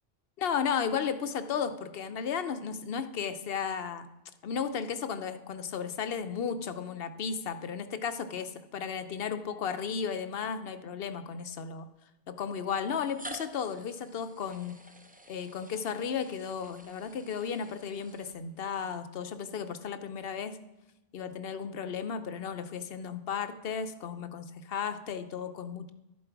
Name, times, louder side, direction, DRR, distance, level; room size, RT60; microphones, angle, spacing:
voice 1, 0.4-4.1 4.4-11.9 12.3-14.8 15.3-20.6 21.1-25.9, left 7 dB, 70° left, 9 dB, 0.9 m, -34 dB
sound 1, 9.5-9.6 10.5-10.6 11.8-11.9 12.8-18.8, right 1 dB, 10° right, 0.6 m, -50 dB
12.0 x 7.5 x 4.6 m, 0.95 s
omnidirectional pair, 1.1 m